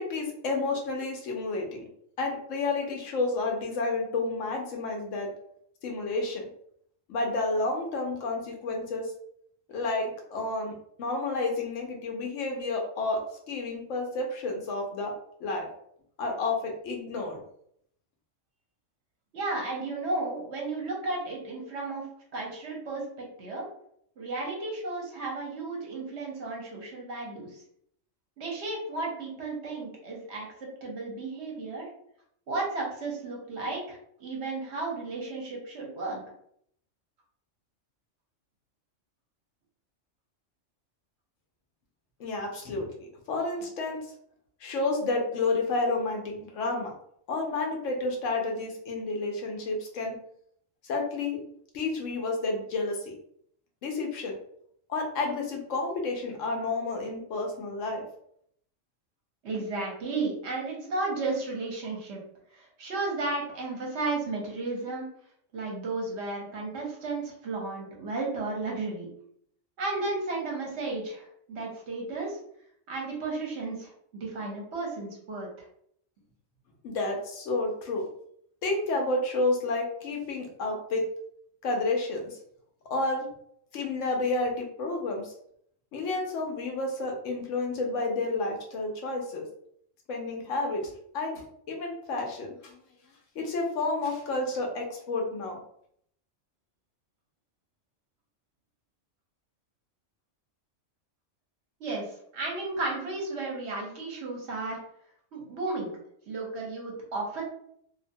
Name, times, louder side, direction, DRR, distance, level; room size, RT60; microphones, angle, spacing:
voice 1, 0.0-1.9 2.2-5.3 5.8-6.5 7.1-9.1 9.7-15.1 15.4-15.7 16.2-17.4 42.2-44.0 44.6-46.9 47.3-50.1 50.8-51.4 51.7-53.1 53.8-54.4 54.9-58.0 76.8-78.1 78.6-81.1 81.6-82.4 82.9-83.3 83.7-85.3 85.9-89.4 90.1-92.8 93.3-95.6, left 3 dB, 75° left, 1 dB, 1.0 m, -30 dB
voice 2, 19.3-23.7 24.2-27.6 28.4-31.9 32.5-36.2 59.4-62.2 62.5-65.1 65.5-69.1 69.8-72.4 72.9-75.7 101.8-104.8 105.3-105.9 106.3-107.4, right 3 dB, 60° right, -2 dB, 1.0 m, -33 dB
2.6 x 2.1 x 2.6 m, 0.69 s
omnidirectional pair, 1.3 m